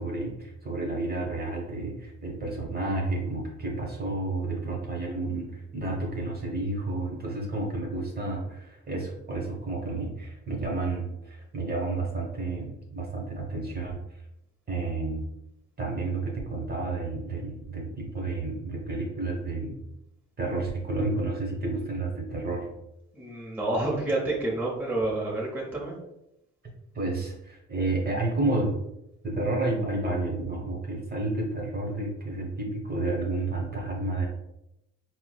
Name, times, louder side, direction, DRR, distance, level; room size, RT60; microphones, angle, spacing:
voice 1, 0.0-14.2 14.7-15.2 15.8-19.8 20.4-22.7 26.9-28.8 29.2-34.3, right 2 dB, 30° right, -1 dB, 1.0 m, -31 dB
voice 2, 23.1-26.0, right 2 dB, 5° right, -4 dB, 0.8 m, -29 dB
4.4 x 2.1 x 2.3 m, 0.85 s
cardioid pair, 90°, 30 cm